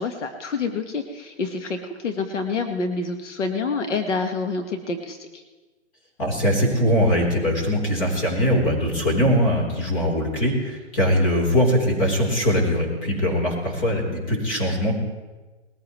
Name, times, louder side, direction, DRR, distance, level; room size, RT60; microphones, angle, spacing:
voice 1, 0.0-5.4, left 4 dB, 85° left, 5 dB, 1.6 m, -27 dB
voice 2, 6.2-14.9, equal, 30° left, -1 dB, 3.9 m, -21 dB
20.5 x 14.5 x 3.2 m, 1.2 s
hypercardioid pair, 165°, 35 cm